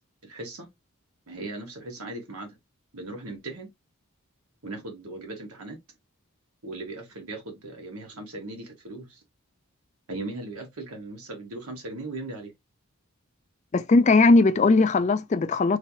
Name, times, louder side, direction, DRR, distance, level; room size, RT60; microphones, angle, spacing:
voice 1, 0.3-0.7 1.3-2.5 2.9-3.7 4.6-5.8 6.6-9.0 10.1-12.5, right 2 dB, 85° right, 1.5 m, -38 dB
voice 2, 13.7-15.8, left 3 dB, 30° left, 0.3 m, -19 dB
3.3 x 3.0 x 2.8 m
head